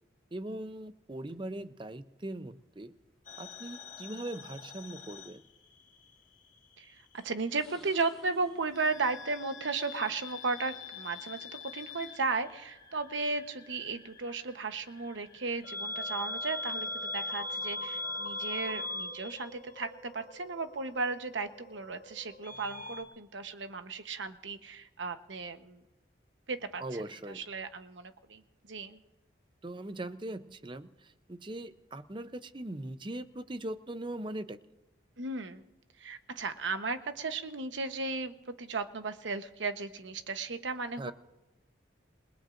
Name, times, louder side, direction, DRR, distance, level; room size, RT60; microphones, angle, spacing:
voice 1, 0.3-2.9 3.4-5.4 26.8-27.4 29.6-34.6 41.0-41.1, right 1 dB, 25° right, 12 dB, 0.6 m, -40 dB
sound 1, 1.3-1.7 2.7-2.8 4.0-4.1 4.5-4.6 6.1-6.4 7.1-10.0 10.4-10.8, left 1 dB, ahead, 2.4 m, -61 dB
sound 2, 3.3-6.1 6.4-7.5 8.7-23.0, left 2 dB, 45° left, 1.7 m, -41 dB
voice 2, 6.8-25.8 26.5-29.0 35.2-35.6 36.0-41.1, right 4 dB, 80° right, 9 dB, 1.0 m, -35 dB
28.5 x 19.0 x 2.6 m, 1.1 s
head